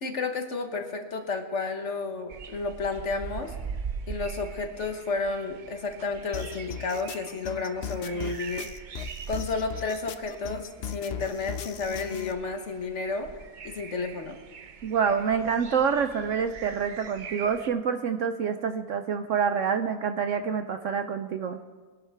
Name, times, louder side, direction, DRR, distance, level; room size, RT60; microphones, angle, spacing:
voice 1, 0.0-3.5 4.1-8.7 9.3-13.3 13.6-14.4, left 3 dB, 50° left, 5 dB, 1.3 m, -31 dB
sound 1, 2.3-17.7, right 6 dB, 90° right, 0.4 m, -42 dB
sound 2, 6.3-12.3, left 8 dB, 75° left, 0.5 m, -38 dB
voice 2, 14.8-21.6, right 6 dB, 65° right, 8 dB, 0.8 m, -27 dB
22.0 x 11.0 x 3.4 m, 1.5 s
omnidirectional pair, 1.7 m